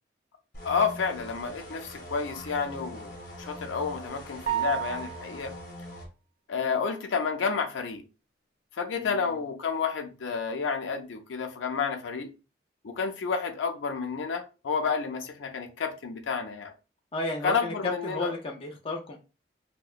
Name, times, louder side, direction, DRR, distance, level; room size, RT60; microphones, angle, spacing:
sound 1, 0.5-6.1, equal, 50° left, 0.7 m, -43 dB
voice 1, 0.6-3.1 3.4-5.5 6.5-8.0 8.8-12.3 12.8-16.7 17.4-18.3, left 5 dB, 85° left, 0.5 m, -30 dB
sound 2, 4.5-5.5, right 12 dB, 55° right, 0.4 m, -31 dB
voice 2, 8.9-9.4 17.1-19.2, left 2 dB, 30° left, 0.4 m, -33 dB
2.8 x 2.1 x 2.4 m
head